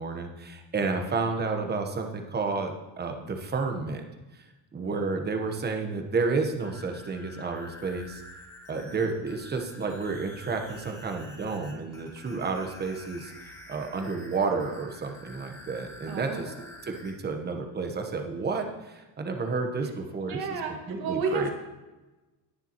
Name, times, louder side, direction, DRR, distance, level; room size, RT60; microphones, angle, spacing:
voice 1, 0.0-4.0 4.3-4.4 4.7-8.2 8.7-16.5 16.8-21.5, right 4 dB, 25° right, 4 dB, 1.1 m, -31 dB
sound 1, 6.4-17.1, left 1 dB, 10° left, 2.9 m, -48 dB
voice 2, 16.1-16.6 20.3-20.7 21.0-21.5, right 4 dB, 55° right, 2 dB, 2.1 m, -31 dB
19.5 x 6.8 x 3.0 m, 1.1 s
cardioid pair, 155°, 43 cm